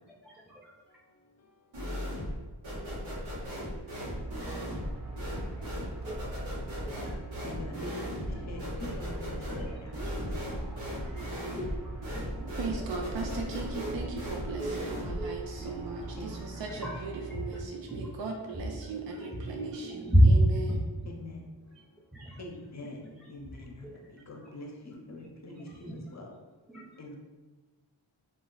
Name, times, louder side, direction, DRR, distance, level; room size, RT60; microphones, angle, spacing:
voice 1, 0.2-0.7 6.0-6.2 6.9-7.2 8.3-8.9 9.4-10.1 11.8-12.4 12.8-12.9 13.7-14.0 14.5-14.8 15.1-16.1 16.7-17.6 17.9-18.1 18.5-18.7 19.1-19.5 19.8-20.4 20.7-20.8 21.1-21.3 22.1-22.4 23.0-24.0 24.4-24.5 25.2-26.2 26.7-26.9, equal, ahead, -6 dB, 0.4 m, -31 dB
sound 1, 1.7-2.4 2.6-15.3, equal, 85° right, 1.1 m, -37 dB
sound 2, 4.0-17.6, right 2 dB, 40° right, 0.9 m, -42 dB
voice 2, 7.4-8.2 8.5-10.2 16.2-16.5 21.1-21.4 22.4-23.0 23.3-23.9 24.3-26.3 27.0-27.2, left 2 dB, 35° left, 1 dB, 0.6 m, -44 dB
voice 3, 12.6-20.7, right 3 dB, 70° right, 1 dB, 0.5 m, -38 dB
2.4 x 2.1 x 3.8 m, 1.3 s
cardioid pair, 45°, 46 cm